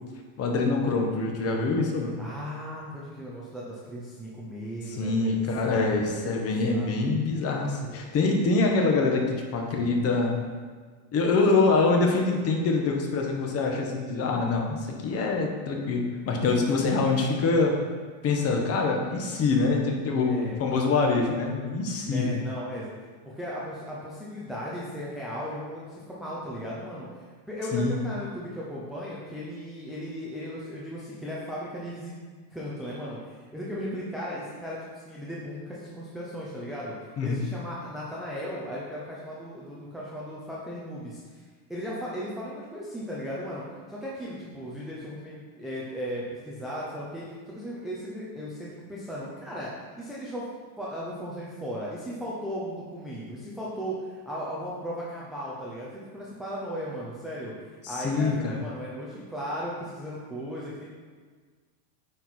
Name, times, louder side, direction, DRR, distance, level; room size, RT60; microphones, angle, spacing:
voice 1, 0.4-2.1 4.9-10.4 11.1-17.7 18.2-22.4 27.7-28.0 37.2-37.4 57.8-58.5, left 3 dB, 30° left, 1 dB, 1.0 m, -25 dB
voice 2, 2.2-7.1 20.2-20.6 22.0-22.9 23.2-27.1 27.5-32.1 32.5-41.4 41.7-49.7 50.0-50.5 50.8-57.5 57.9-60.8, equal, ahead, -7 dB, 0.4 m, -36 dB
8.9 x 4.6 x 4.1 m, 1.5 s
supercardioid pair, 150°, 50 cm